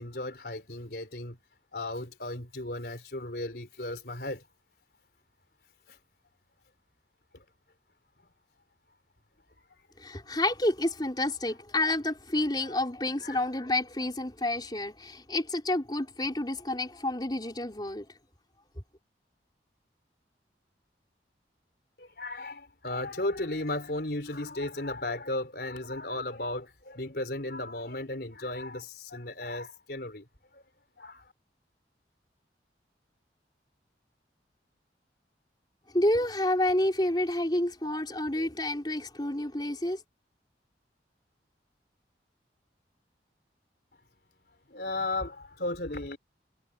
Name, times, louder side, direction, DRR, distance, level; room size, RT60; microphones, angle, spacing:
voice 1, 0.0-1.4 1.7-4.4 5.9-6.0 12.6-12.7 13.2-13.4 22.0-30.3 30.5-30.6 31.0-31.2 44.7-46.2, left 2 dB, 60° left, 4.4 m, -35 dB
voice 2, 10.0-18.1 35.9-40.0, left 1 dB, 25° left, 4.3 m, -29 dB
head